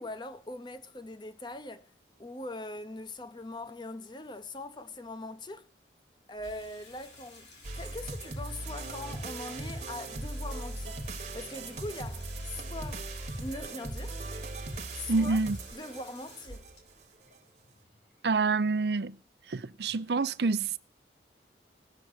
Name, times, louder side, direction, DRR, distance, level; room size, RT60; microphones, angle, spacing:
voice 1, 0.0-1.9 2.2-5.7 6.3-13.1 13.4-14.2 14.9-15.4 15.7-16.7, left 2 dB, 25° left, 0.8 m, -42 dB
Water tap faucet / Sink (filling or washing), 6.4-18.8, left 2 dB, 85° left, 5.3 m, -54 dB
sound 1, 7.6-16.7, right 2 dB, 40° right, 1.2 m, -39 dB
voice 2, 15.1-15.6 18.2-19.2 19.5-20.8, right 4 dB, 70° right, 0.6 m, -27 dB
16.5 x 7.0 x 6.3 m
head